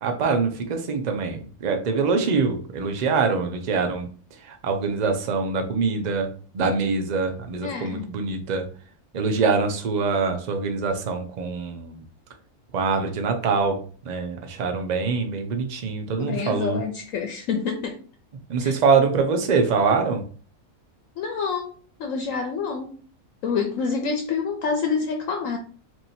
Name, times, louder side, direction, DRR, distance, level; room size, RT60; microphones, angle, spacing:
voice 1, 0.0-4.1 4.4-8.7 9.1-12.0 12.7-16.8 18.5-20.2, right 4 dB, 55° right, 5 dB, 0.5 m, -24 dB
voice 2, 7.6-8.1 16.2-18.0 18.6-18.8 21.2-22.9 23.4-25.6, left 5 dB, 70° left, 5 dB, 0.9 m, -27 dB
3.0 x 2.7 x 4.2 m, 0.42 s
omnidirectional pair, 1.5 m